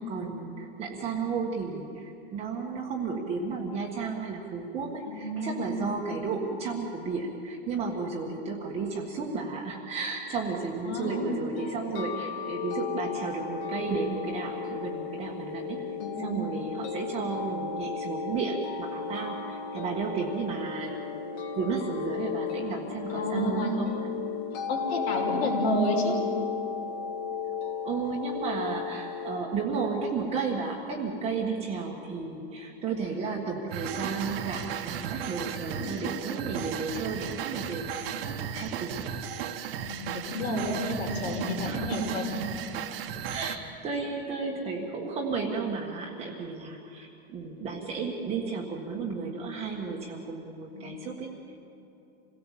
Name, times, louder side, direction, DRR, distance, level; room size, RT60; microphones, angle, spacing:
voice 1, 0.0-15.8 16.2-21.0 21.5-24.0 27.8-39.1 41.6-42.0 43.3-51.3, right 4 dB, 20° right, -1 dB, 1.6 m, -33 dB
voice 2, 5.1-5.7 10.8-11.2 16.0-16.3 23.1-23.8 24.7-26.2 35.6-36.0 39.9-42.3 50.7-50.9, left 1 dB, 90° left, 2 dB, 5.6 m, -30 dB
sound 1, 11.0-29.4, left 6 dB, 35° left, 1.4 m, -35 dB
sound 2, 33.7-43.6, right 8 dB, 65° right, 1.6 m, -35 dB
27.0 x 17.5 x 7.5 m, 2.8 s
supercardioid pair, 170°, 31 cm